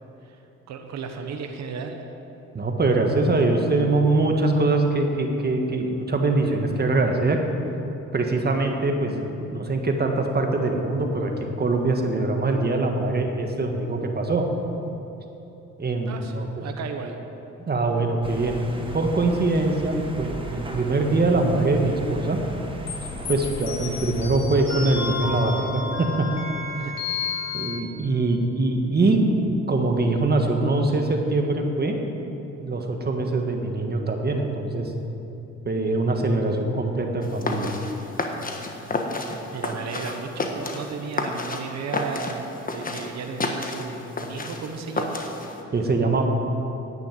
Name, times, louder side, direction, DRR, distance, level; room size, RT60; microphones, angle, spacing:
voice 1, 0.7-2.0 16.1-17.2 26.8-26.9 39.1-45.2, right 5 dB, 60° right, 4 dB, 1.1 m, -34 dB
voice 2, 2.5-7.4 8.1-14.5 15.8-16.5 17.7-22.4 23.3-26.3 27.5-32.0 32.6-34.9 35.6-37.7 45.7-46.2, right 2 dB, 30° right, 3 dB, 1.6 m, -23 dB
sound 1, 18.2-24.2, right 2 dB, 15° right, 1.5 m, -37 dB
sound 2, 22.9-27.8, left 4 dB, 60° left, 2.4 m, -31 dB
sound 3, 37.2-45.6, left 2 dB, 30° left, 1.4 m, -31 dB
10.5 x 9.2 x 7.8 m, 3.0 s
cardioid pair, 90°, 30 cm